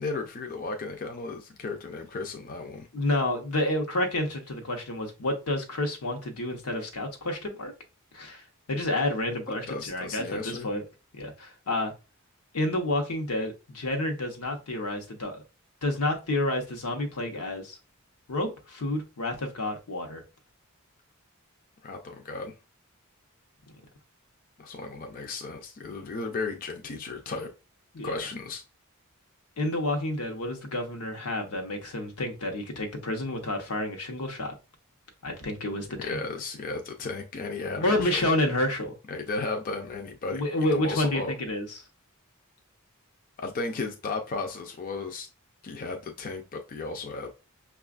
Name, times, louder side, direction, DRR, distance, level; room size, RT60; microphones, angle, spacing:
voice 1, 0.0-2.9 9.7-10.7 21.8-22.5 24.6-27.5 28.0-28.6 36.0-38.4 39.1-41.3 43.4-45.3 45.6-47.3, left 3 dB, 40° left, 0.4 m, -34 dB
voice 2, 2.9-7.7 8.1-8.4 8.7-10.8 11.2-11.9 12.5-15.4 15.8-17.8 18.3-20.2 27.9-28.2 29.6-34.5 35.2-36.2 37.8-38.9 40.3-41.8, left 1 dB, 90° left, 0.9 m, -29 dB
5.8 x 2.3 x 2.4 m
head